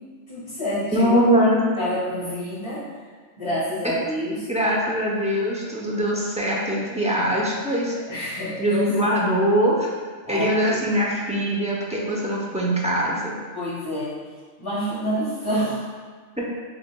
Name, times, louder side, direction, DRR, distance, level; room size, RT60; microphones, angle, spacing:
voice 1, 0.0-1.2 1.8-2.8 3.4-4.5 8.1-8.9 10.2-10.8 13.5-14.2 14.6-15.9, equal, 25° left, -12 dB, 1.2 m, -28 dB
voice 2, 0.9-1.6 3.8-3.9 4.5-7.9 8.6-9.9 10.3-13.3 16.4-16.5, equal, 10° right, -5 dB, 0.5 m, -22 dB
6.9 x 3.0 x 2.3 m, 1.5 s
omnidirectional pair, 1.2 m